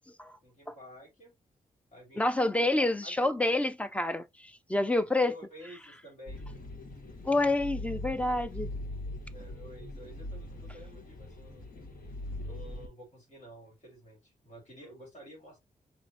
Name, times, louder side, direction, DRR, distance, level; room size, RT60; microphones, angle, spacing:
voice 1, 0.4-1.3 1.9-3.3 5.1-6.4 9.3-11.7 12.4-15.6, equal, 50° left, 2.7 m, -51 dB
voice 2, 2.2-5.3 7.2-8.7, left 2 dB, 10° left, 0.5 m, -28 dB
sound 1, 6.3-12.9, left 1 dB, 85° left, 1.4 m, -41 dB
5.1 x 3.0 x 2.6 m
cardioid pair, 100°, 14 cm